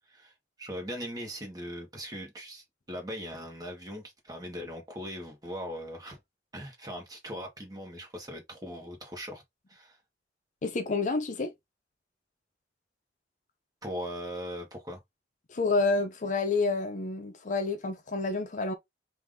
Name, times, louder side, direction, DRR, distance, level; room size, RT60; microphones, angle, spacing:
voice 1, 0.6-6.2 6.5-9.4 9.7-10.0 13.8-15.0, equal, 20° right, 1.4 m, -40 dB
voice 2, 10.6-11.5 15.5-18.7, left 3 dB, 45° left, 0.6 m, -29 dB
3.5 x 2.6 x 3.6 m
head